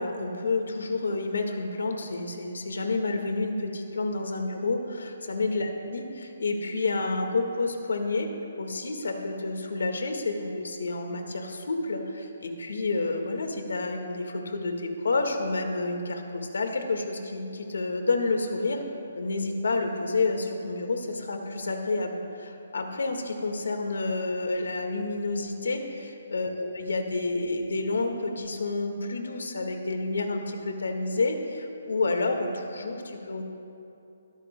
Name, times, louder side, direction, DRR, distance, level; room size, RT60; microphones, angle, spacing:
voice 1, 0.0-8.3 8.6-18.8 19.1-33.4, left 3 dB, 90° left, 4 dB, 1.6 m, -29 dB
21.5 x 14.0 x 2.2 m, 2.8 s
hypercardioid pair, 165°, 0 cm